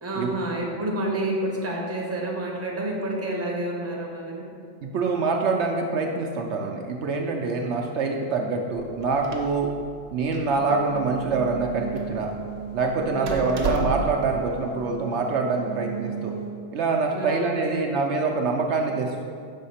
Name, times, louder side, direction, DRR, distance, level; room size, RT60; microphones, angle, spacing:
voice 1, 0.0-4.4 13.1-13.7 17.1-17.8, right 1 dB, 15° right, -2 dB, 0.8 m, -29 dB
voice 2, 4.8-9.7 10.1-12.3 12.7-16.3 16.7-19.2, right 4 dB, 70° right, 1 dB, 0.9 m, -25 dB
Door, 8.8-14.4, right 3 dB, 85° right, 1.1 m, -34 dB
sound 1, 10.5-16.5, right 6 dB, 45° left, 2.0 m, -37 dB
6.4 x 3.6 x 5.6 m, 2.2 s
omnidirectional pair, 1.3 m